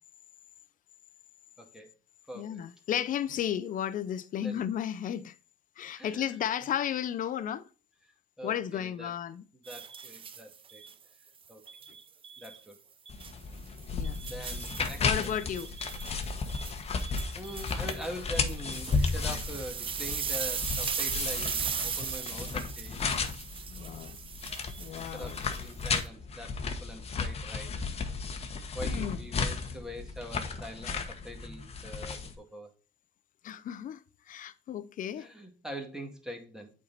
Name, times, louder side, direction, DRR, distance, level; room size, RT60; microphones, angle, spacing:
voice 1, 1.6-1.9 2.3-2.6 4.4-4.6 5.9-6.4 8.4-9.1 9.7-10.8 11.5-11.6 12.4-12.8 14.2-15.1 15.5-15.6 17.3-23.0 24.9-27.7 28.7-32.7 35.2-36.7, equal, 5° right, 2.1 m, -43 dB
voice 2, 2.3-5.3 5.8-7.7 8.4-9.4 13.9-14.2 15.0-15.7 23.7-24.2 24.8-25.4 28.8-29.2 30.9-31.0 33.4-35.3, left 10 dB, 50° left, 0.7 m, -34 dB
sound 1, 9.7-10.9 11.7-12.6 13.1-13.3 13.8-26.0, right 7 dB, 30° right, 0.6 m, -38 dB
sound 2, 13.1-32.3, left 4 dB, 35° left, 1.2 m, -34 dB
8.3 x 4.5 x 4.0 m
cardioid pair, 110°, 17 cm